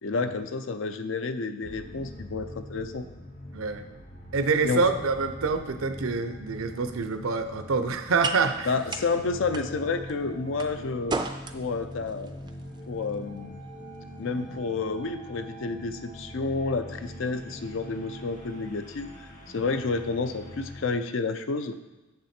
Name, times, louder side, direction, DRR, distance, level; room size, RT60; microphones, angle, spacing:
voice 1, 0.0-3.1 4.6-4.8 8.7-11.2 11.5-12.3 12.9-13.6 14.2-19.1 19.5-21.8, left 4 dB, 65° left, 9 dB, 0.5 m, -30 dB
sound 1, 1.6-20.9, equal, 40° left, 1.3 m, -43 dB
voice 2, 4.3-8.7, right 4 dB, 80° right, 8 dB, 0.6 m, -26 dB
sound 2, 6.7-15.1, right 4 dB, 20° right, 0.4 m, -39 dB
7.3 x 6.1 x 4.3 m, 1.1 s
head